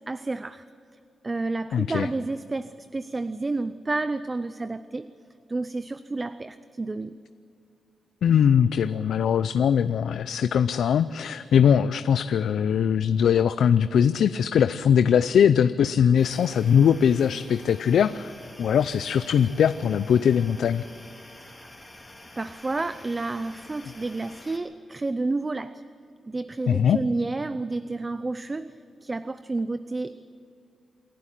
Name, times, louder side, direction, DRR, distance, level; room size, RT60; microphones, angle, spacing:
voice 1, 0.1-0.6 1.2-5.1 5.5-7.1 21.6-21.7 22.4-25.8 26.3-28.7 29.0-30.2, right 3 dB, 25° right, 13 dB, 0.5 m, -30 dB
voice 2, 1.7-2.1 8.2-18.3 18.6-20.8 26.7-27.0, left 8 dB, 85° left, 13 dB, 0.5 m, -21 dB
sound 1, 16.2-24.6, left 1 dB, 15° left, 3.1 m, -47 dB
27.0 x 11.5 x 10.0 m, 2.5 s
cardioid pair, 95°, 0 cm